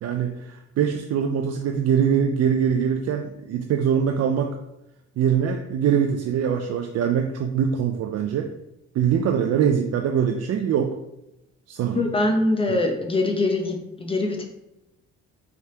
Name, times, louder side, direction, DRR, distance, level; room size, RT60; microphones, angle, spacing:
voice 1, 0.0-4.6 5.2-8.5 8.9-11.0 11.7-12.1, right 8 dB, 55° right, 4 dB, 0.4 m, -23 dB
voice 2, 11.9-14.4, left 2 dB, 20° left, 3 dB, 0.8 m, -23 dB
4.4 x 3.5 x 2.8 m, 0.90 s
cardioid pair, 90°, 30 cm